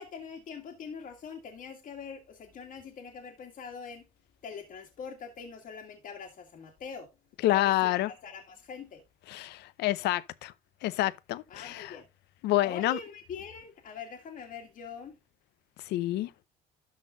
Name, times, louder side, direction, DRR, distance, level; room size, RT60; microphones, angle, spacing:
voice 1, 0.0-4.1 4.4-7.1 7.5-9.0 11.5-12.0 12.6-15.2, left 6 dB, 55° left, 2.1 m, -43 dB
voice 2, 7.4-8.1 9.3-10.5 10.8-12.0 12.4-13.0 15.9-16.3, left 15 dB, 80° left, 0.7 m, -28 dB
12.5 x 4.2 x 3.8 m
cardioid pair, 110°, 17 cm